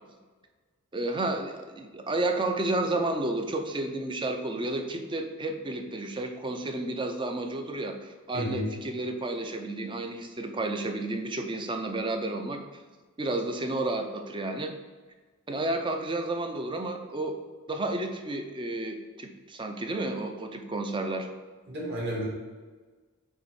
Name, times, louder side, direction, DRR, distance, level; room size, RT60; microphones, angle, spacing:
voice 1, 0.9-12.6 13.2-14.7 15.5-17.4 17.7-21.3, right 2 dB, 20° right, 5 dB, 0.5 m, -31 dB
voice 2, 8.3-8.7 21.7-22.3, equal, 50° right, -3 dB, 1.8 m, -31 dB
8.2 x 3.0 x 4.7 m, 1.4 s
head